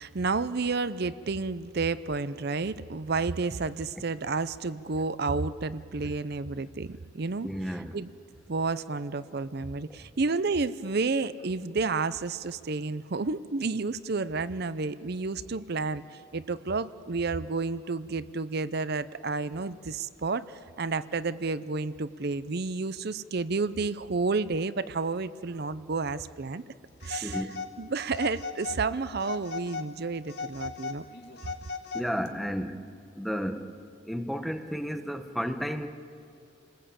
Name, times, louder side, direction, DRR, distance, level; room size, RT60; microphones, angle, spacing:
voice 1, 0.0-8.1 8.5-16.0 16.3-26.6 27.0-27.5 27.8-31.1 31.4-31.5, right 4 dB, 55° right, 15 dB, 0.6 m, -31 dB
voice 2, 7.4-7.9 27.2-27.5 31.9-32.8 33.2-33.6 34.1-35.9, equal, ahead, 6 dB, 1.1 m, -32 dB
Telephone, 27.0-27.7 28.1-28.8 29.2-29.9 30.3-32.3, left 4 dB, 55° left, 1.8 m, -37 dB
29.0 x 20.0 x 8.7 m, 2.5 s
head